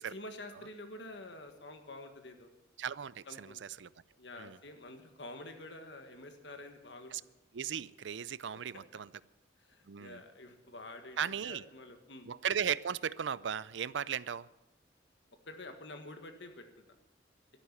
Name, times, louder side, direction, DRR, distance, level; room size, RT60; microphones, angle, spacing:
voice 1, 0.0-2.5 3.3-3.6 4.2-7.3 9.6-12.3 15.5-16.7, left 2 dB, 75° left, 1.6 m, -48 dB
voice 2, 2.8-3.9 4.4-4.6 7.1-7.2 7.5-9.1 9.9-10.2 11.2-11.6 12.3-14.5, right 8 dB, 80° right, 0.5 m, -36 dB
12.5 x 11.0 x 8.4 m
head